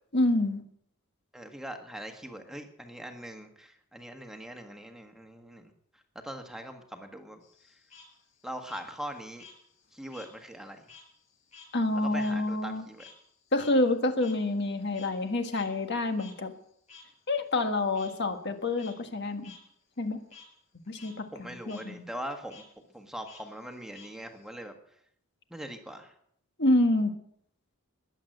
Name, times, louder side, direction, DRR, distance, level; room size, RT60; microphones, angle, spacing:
voice 1, 0.1-0.6 11.7-12.8 13.5-16.5 17.3-19.5 20.0-20.2 20.9-22.1 26.6-27.1, left 2 dB, 50° left, 6 dB, 1.6 m, -27 dB
voice 2, 1.3-7.4 8.4-9.5 9.9-10.9 11.9-13.1 21.3-22.6 22.9-24.7 25.5-26.1, equal, ahead, 4 dB, 1.5 m, -42 dB
Frog, 7.4-10.3 10.6-15.3 15.5-15.7 16.2-16.3 16.9-17.0 17.9-18.1 18.6-18.9 19.4-19.6 19.9-20.4 20.8-21.1 21.4-21.8 22.5-22.6 23.3-24.5, left 5 dB, 30° left, 6.0 m, -52 dB
21.0 x 8.1 x 7.8 m, 0.69 s
head